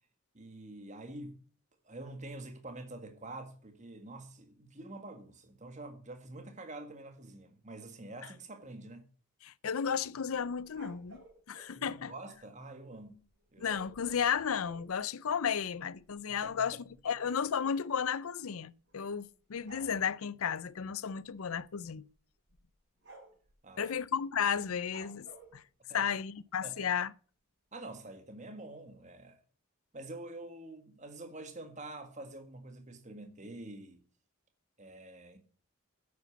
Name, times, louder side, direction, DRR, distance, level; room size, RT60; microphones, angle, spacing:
voice 1, 0.3-1.4 1.8-9.1 11.8-13.2 13.5-13.8 16.3-16.7 23.6-24.0 25.9-26.1 26.6-26.8 27.7-29.4 29.9-34.0 34.8-35.4, right 2 dB, 35° right, 1.7 m, -47 dB
voice 2, 9.4-11.2 11.5-12.1 13.6-16.8 17.0-22.1 23.8-25.6 25.9-27.1, left 7 dB, 80° left, 0.6 m, -33 dB
sound 1, 10.5-11.7 13.6-14.9 15.6-15.7 15.9-16.1 16.4-17.8 18.9-19.2 19.6-19.9 21.3-21.5 21.9-22.0 22.5-22.7 23.0-23.5 24.9-25.5, right 2 dB, 55° right, 6.6 m, -54 dB
10.5 x 8.6 x 7.1 m
head